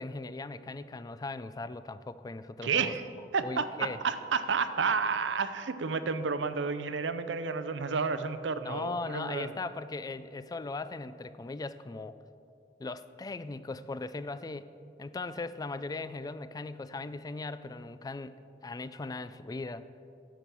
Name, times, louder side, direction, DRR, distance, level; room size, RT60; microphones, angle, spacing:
voice 1, 0.0-2.9 3.4-4.0 8.6-12.2 12.8-14.7 15.0-18.4 18.6-19.8, left 3 dB, 20° left, 14 dB, 0.3 m, -38 dB
voice 2, 2.6-3.0 3.3-9.5, right 5 dB, 90° right, 11 dB, 0.6 m, -31 dB
10.0 x 6.9 x 6.2 m, 2.5 s
head